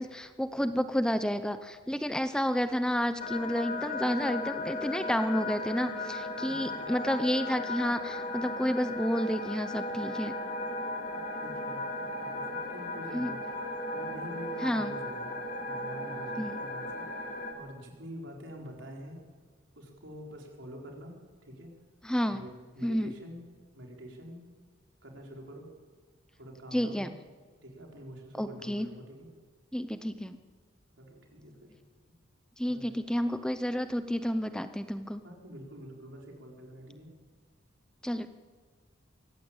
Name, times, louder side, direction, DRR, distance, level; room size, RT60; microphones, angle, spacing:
voice 1, 0.0-10.3 13.1-13.3 14.6-14.9 16.4-16.5 22.0-22.4 22.8-23.1 26.7-27.1 28.4-28.9 29.7-30.4 32.6-35.2 38.0-38.3, equal, 5° left, 10 dB, 0.6 m, -30 dB
sound 1, 3.2-17.5, left 2 dB, 45° left, 2.6 m, -36 dB
voice 2, 11.4-13.4 13.9-19.2 19.7-21.7 22.3-23.4 23.7-24.4 25.0-25.7 26.3-27.1 27.6-29.3 31.0-31.7 32.6-33.0 35.2-37.1, equal, 70° right, 0 dB, 4.6 m, -46 dB
23.5 x 15.0 x 8.9 m, 1.5 s
head